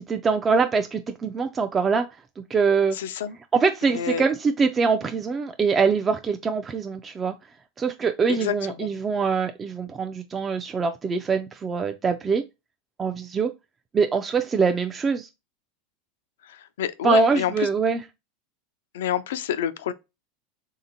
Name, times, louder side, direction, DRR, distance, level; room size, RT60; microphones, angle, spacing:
voice 1, 0.0-2.1 2.5-3.0 3.5-7.3 7.8-12.4 13.0-13.5 13.9-15.3 17.0-18.0, right 5 dB, 25° right, 0.3 m, -23 dB
voice 2, 2.9-3.4 3.9-4.2 8.3-8.9 16.5-17.7 18.9-19.9, left 9 dB, 85° left, 0.3 m, -28 dB
3.4 x 2.8 x 2.5 m
supercardioid pair, 110°, 0 cm